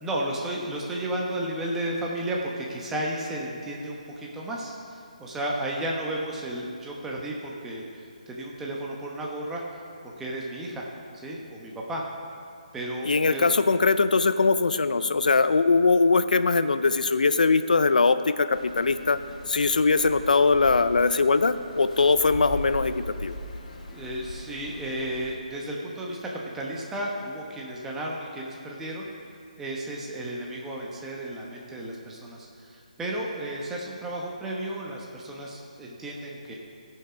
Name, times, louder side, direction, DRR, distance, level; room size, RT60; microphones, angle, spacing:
voice 1, 0.0-9.6 10.0-10.9 11.2-12.0 12.7-13.5 23.9-29.1 29.6-36.5, right 1 dB, 5° right, -3 dB, 1.0 m, -33 dB
voice 2, 13.0-19.2 19.5-23.3, left 4 dB, 85° left, 12 dB, 0.6 m, -21 dB
sound 1, 18.5-25.4, left 1 dB, 65° left, 1.6 m, -39 dB
17.0 x 5.7 x 5.1 m, 2.4 s
hypercardioid pair, 165°, 4 cm